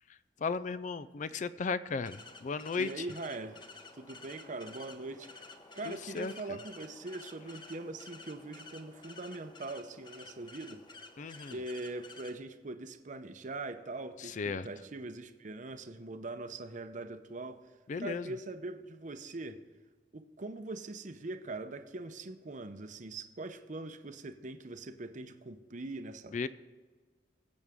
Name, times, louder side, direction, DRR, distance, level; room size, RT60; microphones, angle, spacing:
voice 1, 0.4-3.0 5.8-6.3 11.2-11.6 14.2-14.7 17.9-18.3 26.3-26.5, left 4 dB, 45° left, 0.4 m, -35 dB
sound 1, 2.0-12.3, left 3 dB, 25° left, 1.0 m, -52 dB
voice 2, 2.8-3.6 3.9-5.3 5.7-10.8 11.5-17.7 18.0-19.6 20.1-26.5, right 2 dB, 45° right, 0.8 m, -42 dB
21.0 x 8.0 x 3.6 m
head